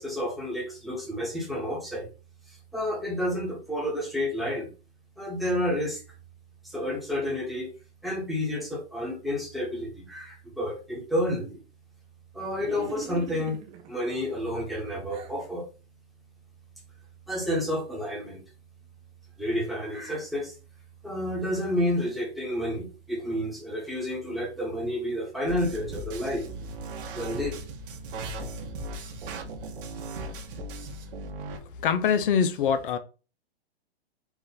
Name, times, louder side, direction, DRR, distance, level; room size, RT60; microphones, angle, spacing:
voice 1, 0.0-2.1 2.7-4.7 5.2-6.0 6.6-7.7 8.0-11.6 12.3-13.6 13.9-15.7 17.3-18.4 19.4-20.5 21.0-26.5 27.1-27.6, left 1 dB, ahead, 1.2 m, -30 dB
sound 1, 12.6-13.9 14.5-15.4, right 7 dB, 20° right, 0.5 m, -41 dB
sound 2, 25.5-31.6, right 2 dB, 55° right, 1.3 m, -37 dB
voice 2, 31.8-33.0, left 7 dB, 55° left, 0.7 m, -23 dB
4.6 x 2.5 x 4.1 m
hypercardioid pair, 135°, 31 cm